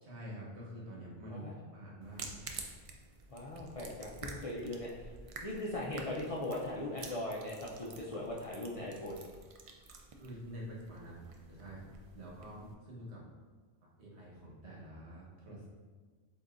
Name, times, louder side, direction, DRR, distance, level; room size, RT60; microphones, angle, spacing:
voice 1, 0.0-2.4 10.2-11.2 11.5-11.8 12.1-13.2 14.0-15.7, equal, 85° right, -4 dB, 1.4 m, -47 dB
sound 1, 2.0-12.7, right 3 dB, 60° right, 0.3 m, -50 dB
voice 2, 3.3-5.1 5.4-9.2, left 1 dB, 45° left, -4 dB, 0.5 m, -39 dB
7.8 x 2.7 x 2.5 m, 1.4 s
omnidirectional pair, 1.1 m